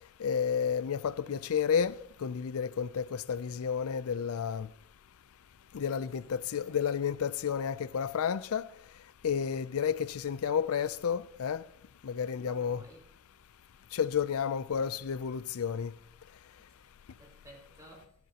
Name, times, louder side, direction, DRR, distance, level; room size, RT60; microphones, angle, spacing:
voice 1, 0.2-4.7 5.7-8.7 9.2-11.6 12.0-12.8 13.9-15.9, left 7 dB, 80° left, 0.4 m, -31 dB
voice 2, 12.4-13.0 16.6-18.1, right 1 dB, 15° right, 3.9 m, -55 dB
15.0 x 14.0 x 2.9 m
head